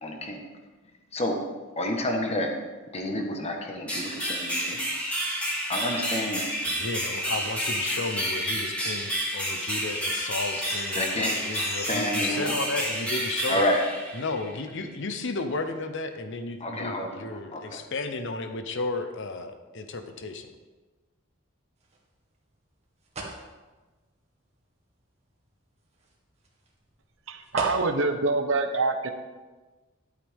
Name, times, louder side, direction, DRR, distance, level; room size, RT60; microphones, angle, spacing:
voice 1, 0.0-0.4 1.1-1.4 1.8-2.5 2.9-4.8 5.7-6.4 10.6-12.5 13.5-13.8 16.6-17.1 17.5-17.8, left 1 dB, 30° left, 2 dB, 1.4 m, -29 dB
sound 1, 3.9-14.6, equal, 5° left, 2.2 m, -30 dB
voice 2, 6.7-13.7 14.1-20.5, left 3 dB, 65° left, 8 dB, 0.9 m, -33 dB
sound 2, 21.8-28.2, right 2 dB, 35° right, 1.8 m, -41 dB
voice 3, 27.3-29.1, right 3 dB, 65° right, 6 dB, 0.9 m, -25 dB
12.0 x 8.9 x 3.7 m, 1.3 s
head